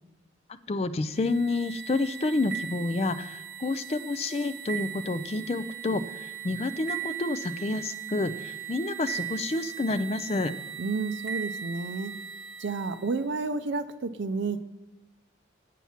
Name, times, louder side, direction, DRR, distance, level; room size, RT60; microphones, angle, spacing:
voice 1, 0.7-10.5, left 2 dB, 35° left, 11 dB, 0.4 m, -29 dB
sound 1, 1.1-13.2, right 9 dB, 55° right, 1.7 m, -39 dB
voice 2, 10.8-12.1 12.6-14.6, right 4 dB, 70° right, 9 dB, 0.5 m, -31 dB
8.3 x 5.8 x 7.2 m, 1.0 s
head